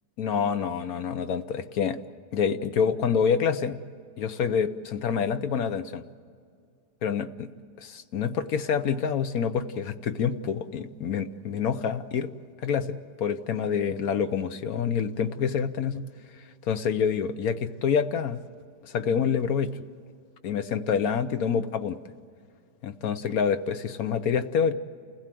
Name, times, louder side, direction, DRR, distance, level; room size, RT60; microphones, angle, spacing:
voice 1, 0.2-2.0 2.3-3.8 4.2-6.0 7.0-7.5 7.8-12.3 12.6-16.0 16.6-18.4 18.8-19.7 20.4-22.0 22.8-24.7, left 7 dB, 65° left, 10 dB, 1.3 m, -27 dB
29.0 x 16.5 x 7.6 m, 2.3 s
omnidirectional pair, 1.8 m